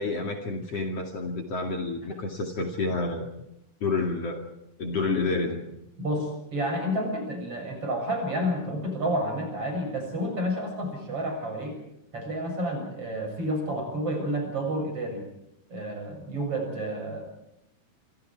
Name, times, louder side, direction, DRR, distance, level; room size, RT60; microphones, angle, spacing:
voice 1, 0.0-3.3 3.8-4.4 4.8-5.6, left 3 dB, 45° left, 3 dB, 3.2 m, -29 dB
voice 2, 6.0-11.8 12.1-15.2 15.7-17.2, equal, 40° right, 3 dB, 8.1 m, -30 dB
27.0 x 26.0 x 4.7 m, 0.81 s
omnidirectional pair, 4.0 m